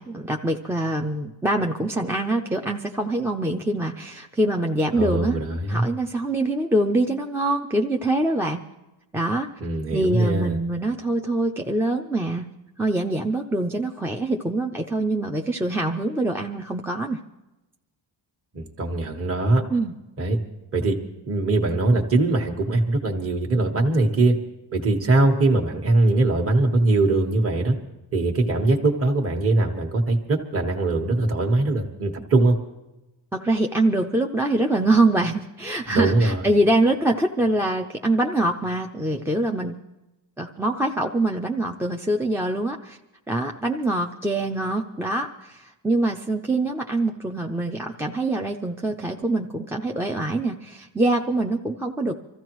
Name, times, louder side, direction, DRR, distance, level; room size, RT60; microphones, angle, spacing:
voice 1, 0.0-5.4 5.7-8.6 9.1-9.5 9.9-12.4 12.8-17.2 19.7-19.9 33.3-39.7 40.4-43.0 43.3-52.2, right 2 dB, 5° right, 1 dB, 0.4 m, -24 dB
voice 2, 4.9-5.9 9.6-10.6 18.5-19.6 20.2-20.4 20.7-21.0 21.3-24.3 24.7-27.8 28.1-32.6 35.9-36.4, right 2 dB, 30° right, 1 dB, 1.3 m, -21 dB
25.5 x 14.5 x 3.1 m, 0.99 s
cardioid pair, 140°, 45 cm